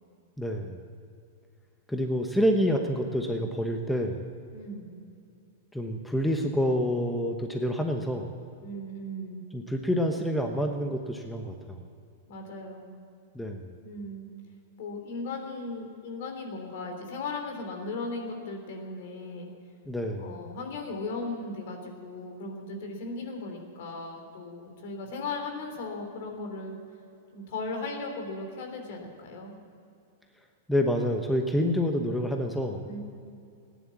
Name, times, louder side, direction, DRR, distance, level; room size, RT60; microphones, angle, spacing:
voice 1, 0.4-0.8 1.9-4.2 5.7-8.3 9.5-11.9 13.3-13.7 19.9-20.4 30.7-32.9, equal, 5° left, 3 dB, 1.1 m, -28 dB
voice 2, 4.5-5.0 8.6-9.4 12.3-12.9 13.8-14.3 14.8-19.5 20.2-26.8 27.3-29.6 32.9-33.0, left 3 dB, 60° left, 3 dB, 3.3 m, -37 dB
15.0 x 10.5 x 8.5 m, 2.5 s
hypercardioid pair, 125°, 0 cm